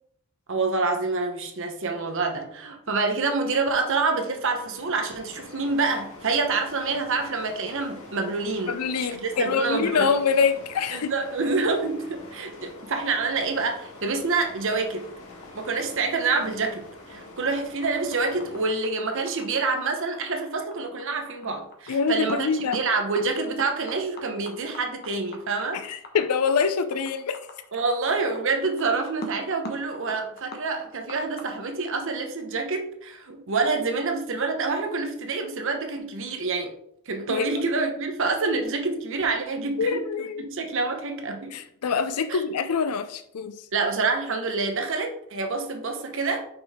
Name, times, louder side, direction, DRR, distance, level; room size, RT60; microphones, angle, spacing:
voice 1, 0.5-8.7 9.2-10.1 10.9-15.1 15.5-25.8 27.7-36.7 37.1-40.0 40.4-41.5 42.3-42.4 43.7-46.5, right 3 dB, 60° right, 4 dB, 0.9 m, -27 dB
sound 1, 4.0-18.7, left 2 dB, 65° left, 1.7 m, -46 dB
voice 2, 8.7-11.1 21.9-22.8 25.7-27.4 37.3-37.6 39.8-40.4 41.5-43.6, left 5 dB, 90° left, 11 dB, 0.5 m, -25 dB
sound 2, 17.8-31.4, left 1 dB, 45° left, 1.0 m, -41 dB
5.8 x 5.4 x 3.5 m, 0.72 s
head